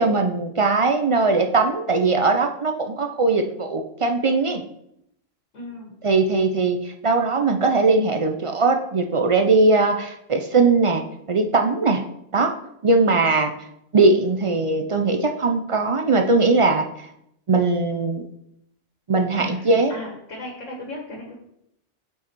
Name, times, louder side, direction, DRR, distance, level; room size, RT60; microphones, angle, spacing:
voice 1, 0.0-4.6 6.0-12.0 12.3-12.5 12.8-13.5 13.9-17.1 17.5-18.3 19.1-19.9, right 3 dB, 50° right, 4 dB, 0.3 m, -20 dB
voice 2, 5.5-5.9 19.3-21.4, left 1 dB, 85° left, -1 dB, 1.8 m, -37 dB
7.1 x 4.7 x 4.5 m, 0.77 s
omnidirectional pair, 1.3 m